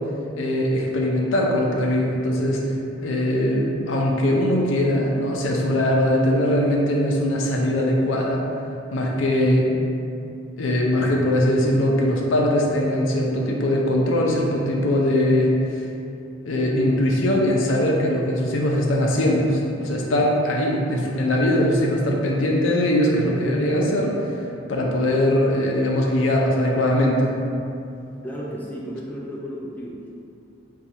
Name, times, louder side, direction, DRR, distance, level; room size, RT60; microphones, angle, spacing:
voice 1, 0.4-2.6 3.0-8.4 8.9-9.7 10.6-15.8 16.5-24.1 24.7-27.3, left 1 dB, 90° left, -1 dB, 0.5 m, -21 dB
voice 2, 28.2-30.1, equal, 10° left, -5 dB, 0.3 m, -33 dB
2.7 x 2.3 x 4.1 m, 2.6 s
head